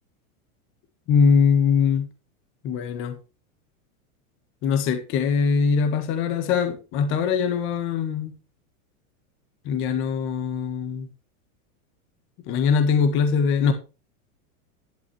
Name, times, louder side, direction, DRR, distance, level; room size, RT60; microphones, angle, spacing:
voice 1, 1.1-2.1 2.6-3.2 4.6-8.3 9.6-11.1 12.5-13.7, left 6 dB, 30° left, 1.5 m, -22 dB
11.5 x 10.5 x 3.3 m
supercardioid pair, 165°, 43 cm